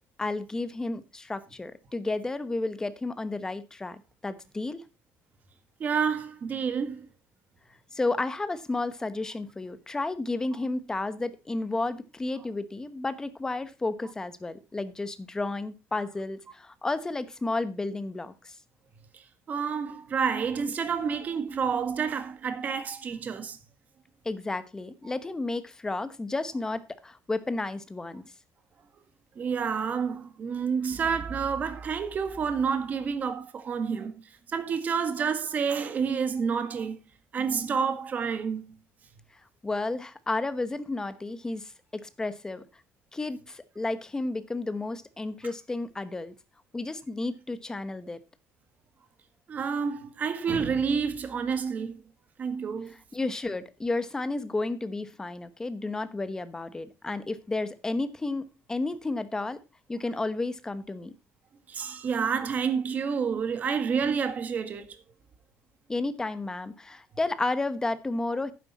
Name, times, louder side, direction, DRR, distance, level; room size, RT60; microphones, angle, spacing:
voice 1, 0.2-4.0 4.2-4.8 7.9-18.6 24.2-28.2 39.6-42.6 43.1-46.3 46.7-48.2 53.1-59.6 59.9-61.1 65.9-68.5, left 2 dB, 15° left, 1.0 m, -32 dB
voice 2, 5.8-7.1 19.5-23.6 29.3-34.1 34.5-37.0 37.3-38.6 49.5-52.0 52.4-52.9 61.7-64.9, right 6 dB, 35° right, 1.7 m, -29 dB
11.5 x 9.6 x 4.2 m
cardioid pair, 150°, 5 cm